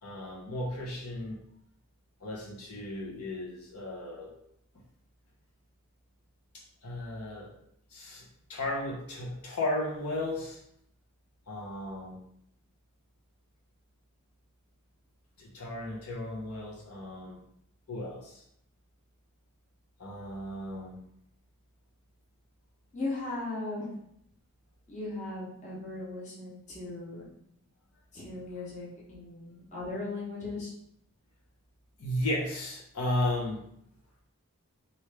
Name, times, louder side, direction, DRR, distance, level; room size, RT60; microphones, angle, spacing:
voice 1, 0.0-1.4 2.2-4.3 6.5-7.5 7.9-10.6 11.5-12.2 15.4-17.4 17.9-18.4 20.0-21.0 32.0-33.6, left 1 dB, 85° left, -3 dB, 0.9 m, -35 dB
voice 2, 22.9-23.9 24.9-27.3 28.1-30.7, left 2 dB, 35° left, -6 dB, 0.9 m, -37 dB
3.1 x 2.6 x 3.3 m, 0.73 s
head